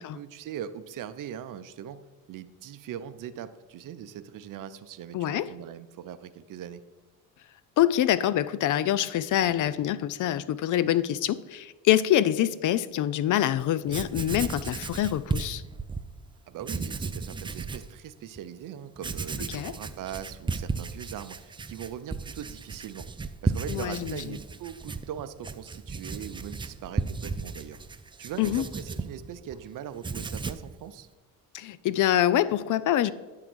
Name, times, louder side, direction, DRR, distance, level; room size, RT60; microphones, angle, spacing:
voice 1, 0.0-2.0 2.3-6.8 16.5-23.1 23.4-27.8 28.2-31.1, right 9 dB, 55° right, 12 dB, 0.6 m, -40 dB
voice 2, 5.1-5.4 7.8-15.6 19.5-19.7 23.7-24.2 28.4-28.6 31.5-33.1, left 12 dB, 55° left, 16 dB, 0.5 m, -25 dB
Writing, 13.6-13.7 13.9-16.1 16.6-17.9 18.4-18.5 19.0-29.6 29.9-30.7, right 4 dB, 15° right, 0.3 m, -34 dB
10.0 x 3.8 x 6.1 m, 1.2 s
cardioid pair, 85°, 38 cm